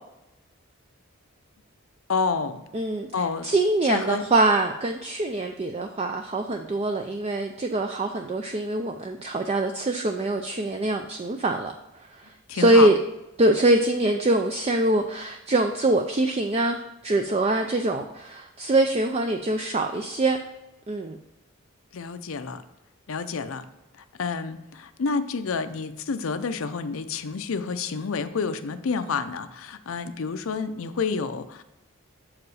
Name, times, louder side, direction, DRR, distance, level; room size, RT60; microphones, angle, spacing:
voice 1, 2.1-2.6 3.1-3.5 3.9-4.2 12.5-12.9 21.9-22.6 23.1-23.6 24.2-31.6, left 5 dB, 75° left, 10 dB, 0.5 m, -29 dB
voice 2, 2.7-3.1 3.4-13.0 13.4-20.4 20.9-21.2, right 2 dB, 30° right, 5 dB, 0.4 m, -24 dB
7.2 x 4.9 x 4.8 m, 0.97 s
head